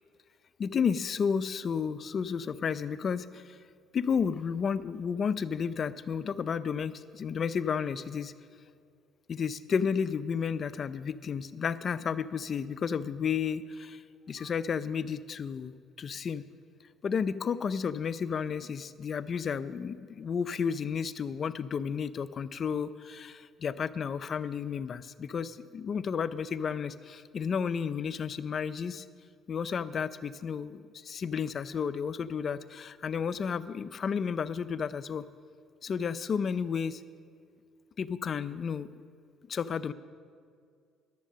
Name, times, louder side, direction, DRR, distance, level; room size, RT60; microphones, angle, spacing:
voice 1, 0.6-3.6 3.9-8.3 9.3-14.0 14.3-16.4 17.0-29.1 29.5-35.2 35.8-37.0 38.0-38.9 39.5-39.9, left 6 dB, 45° left, 15 dB, 0.4 m, -32 dB
11.5 x 7.4 x 7.4 m, 2.1 s
supercardioid pair, 90°, 0 cm